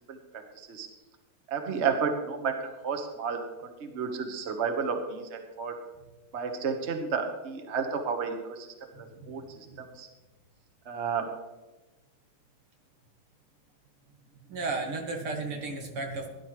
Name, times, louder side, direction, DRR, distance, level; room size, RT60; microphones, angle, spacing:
voice 1, 0.5-0.9 1.5-5.8 6.3-8.7 9.0-10.1 10.8-11.3, right 5 dB, 35° right, 5 dB, 1.3 m, -32 dB
voice 2, 8.9-9.9 14.5-16.3, right 3 dB, 80° right, 2 dB, 2.7 m, -35 dB
17.0 x 11.0 x 3.2 m, 1.1 s
omnidirectional pair, 2.4 m